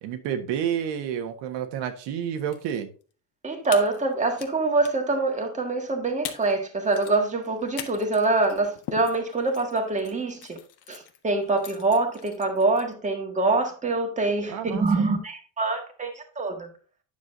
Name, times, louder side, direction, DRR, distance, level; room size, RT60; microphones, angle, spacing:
voice 1, 0.0-2.9 14.5-15.0, right 9 dB, 80° right, 1.5 m, -30 dB
sound 1, 2.3-2.7 3.0-3.1 3.6-4.5 4.8-5.1 5.9-6.0 6.2-6.6 6.8-12.9, left 10 dB, 65° left, 1.3 m, -41 dB
voice 2, 3.4-10.6 10.9-16.7, right 3 dB, 15° right, 1.7 m, -25 dB
9.6 x 7.2 x 2.7 m
cardioid pair, 140°, 42 cm